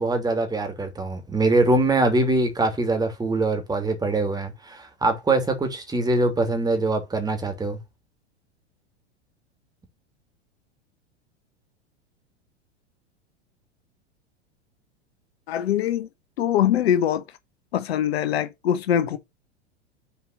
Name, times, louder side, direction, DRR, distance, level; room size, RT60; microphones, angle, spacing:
voice 1, 0.0-7.8, right 2 dB, 10° right, 2.9 m, -23 dB
voice 2, 15.5-16.1 16.4-17.2 17.7-19.2, left 10 dB, 65° left, 1.0 m, -22 dB
6.9 x 4.5 x 6.4 m
figure-of-eight pair, 90°, 33 cm